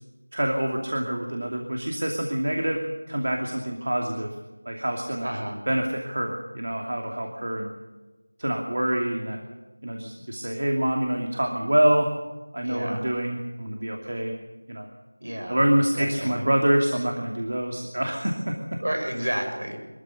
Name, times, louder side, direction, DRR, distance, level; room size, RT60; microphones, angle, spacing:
voice 1, 0.3-4.3 4.6-5.3 5.7-7.7 8.4-9.4 9.8-12.1 12.5-14.3 14.7-14.9 15.5-18.8 19.2-19.3, right 1 dB, 50° right, 2 dB, 2.7 m, -26 dB
voice 2, 5.2-5.6 12.6-13.0 15.2-15.6 16.0-16.4 18.8-19.8, right 1 dB, 70° right, 3 dB, 7.6 m, -30 dB
24.0 x 14.5 x 8.2 m, 1.2 s
figure-of-eight pair, 180°, 0 cm